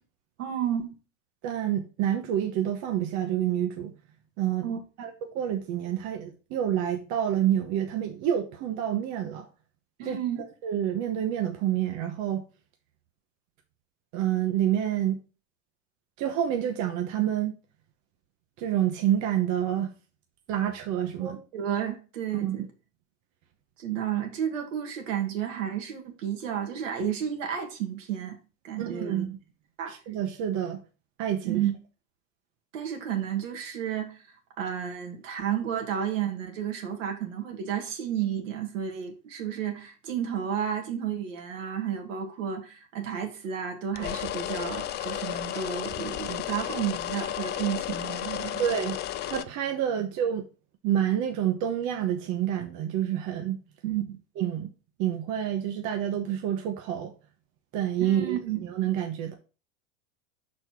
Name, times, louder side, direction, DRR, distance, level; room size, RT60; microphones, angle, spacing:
voice 1, 0.4-0.9 4.6-4.8 10.0-10.4 21.2-22.6 23.8-28.4 28.6-29.3 29.8-29.9 31.4-31.7 32.7-34.2 34.6-48.7 53.8-54.1 58.0-58.6, right 9 dB, 80° right, 1.8 m, -32 dB
voice 2, 1.4-3.9 4.4-4.7 5.0-9.5 10.1-10.2 10.6-12.4 14.1-15.2 16.2-17.5 18.6-19.9 20.5-21.4 22.4-22.6 28.8-29.4 29.9-30.8 31.2-31.6 48.6-49.0 49.3-50.4 50.8-53.6 54.4-54.7 55.0-57.1 57.7-58.4 58.7-59.3, right 10 dB, 50° right, 1.0 m, -28 dB
sound 1, 44.0-49.4, left 12 dB, 30° left, 0.4 m, -33 dB
5.4 x 4.3 x 4.6 m
hypercardioid pair, 105°, 38 cm